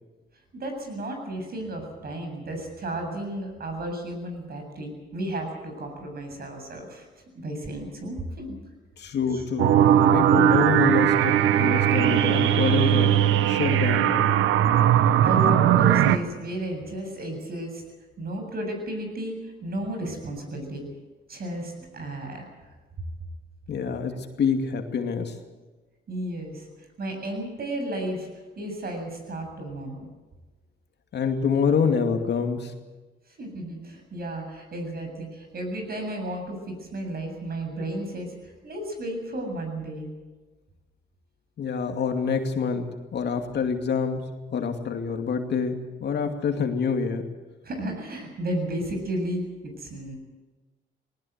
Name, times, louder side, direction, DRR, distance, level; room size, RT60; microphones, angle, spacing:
voice 1, 0.5-7.1 7.3-8.6 9.3-9.4 15.2-17.8 18.2-20.8 21.3-22.5 26.1-26.7 27.0-28.3 28.6-30.0 33.4-40.1 47.6-49.4 49.8-50.2, right 1 dB, 50° right, 4 dB, 7.6 m, -33 dB
voice 2, 9.0-13.2 13.5-14.3 23.7-25.4 31.1-32.7 41.6-47.3, left 6 dB, 60° left, 5 dB, 2.5 m, -26 dB
sound 1, 9.6-16.2, right 10 dB, 85° right, 1.1 m, -19 dB
19.5 x 19.0 x 8.1 m, 1.2 s
cardioid pair, 90°, 20 cm